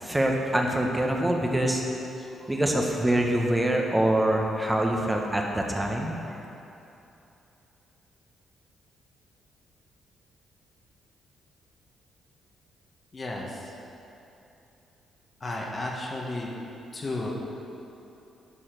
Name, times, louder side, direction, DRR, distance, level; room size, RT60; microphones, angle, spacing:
voice 1, 0.0-1.8 2.4-6.1, right 1 dB, 10° right, 1 dB, 1.5 m, -25 dB
voice 2, 13.1-13.7 15.4-16.5 16.9-17.3, left 2 dB, 35° left, -3 dB, 1.9 m, -33 dB
11.0 x 5.6 x 6.9 m, 2.9 s
cardioid pair, 85°, 0 cm